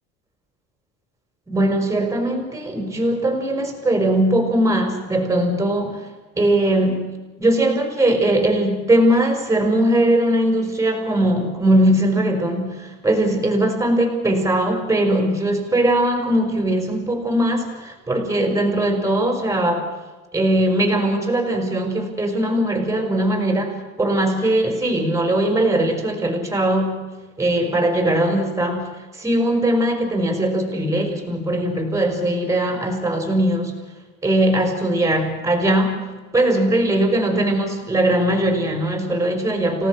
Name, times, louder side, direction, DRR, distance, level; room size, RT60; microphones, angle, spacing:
voice 1, 1.5-6.1 6.4-7.1 7.4-19.9 20.3-27.0 27.4-33.7 34.2-39.9, right 1 dB, 10° right, 5 dB, 5.3 m, -20 dB
29.5 x 18.0 x 6.3 m, 1.2 s
cardioid pair, 145°, 34 cm